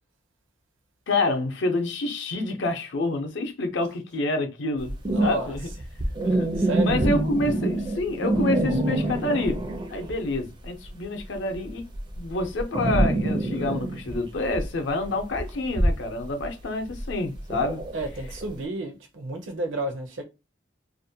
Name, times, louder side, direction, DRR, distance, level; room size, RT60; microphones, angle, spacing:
voice 1, 1.1-5.7 6.0-9.6 9.9-11.8 12.2-17.8, left 2 dB, 65° left, 0.6 m, -28 dB
sound 1, 4.8-10.4 10.6-18.5, right 1 dB, 25° right, 0.4 m, -26 dB
voice 2, 5.1-5.8 6.6-7.2 17.9-20.2, right 1 dB, 70° right, 0.6 m, -32 dB
2.5 x 2.1 x 2.7 m
head